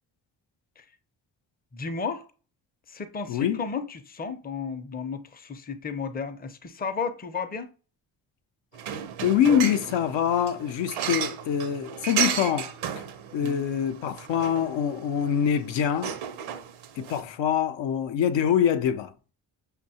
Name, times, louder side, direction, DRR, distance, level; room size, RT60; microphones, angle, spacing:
voice 1, 1.7-2.3 2.9-7.7 13.4-13.6, left 5 dB, 20° left, 0.5 m, -33 dB
voice 2, 3.3-3.6 9.2-12.7 13.3-16.1 17.0-19.1, left 9 dB, 70° left, 0.5 m, -25 dB
sound 1, 8.7-17.2, right 9 dB, 85° right, 0.6 m, -34 dB
5.4 x 2.2 x 2.7 m
supercardioid pair, 55°, 46 cm